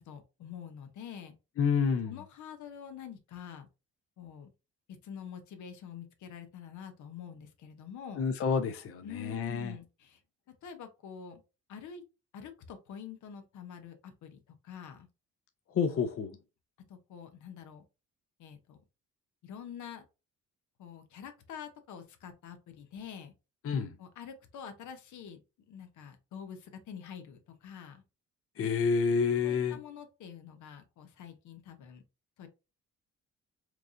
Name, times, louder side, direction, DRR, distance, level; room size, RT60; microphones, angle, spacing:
voice 1, 0.1-1.3 2.1-3.7 4.2-4.5 5.0-8.2 9.0-10.2 10.6-11.4 11.7-12.0 12.3-15.1 16.9-17.8 18.4-18.8 19.4-20.0 20.8-23.3 24.0-25.4 25.7-28.0 29.4-32.0 32.4-32.5, left 8 dB, 75° left, 0.8 m, -46 dB
voice 2, 1.6-2.1 8.2-9.7 15.7-16.4 23.6-24.0 28.6-29.8, left 6 dB, 50° left, 0.6 m, -29 dB
4.6 x 2.4 x 2.6 m
cardioid pair, 90°, 30 cm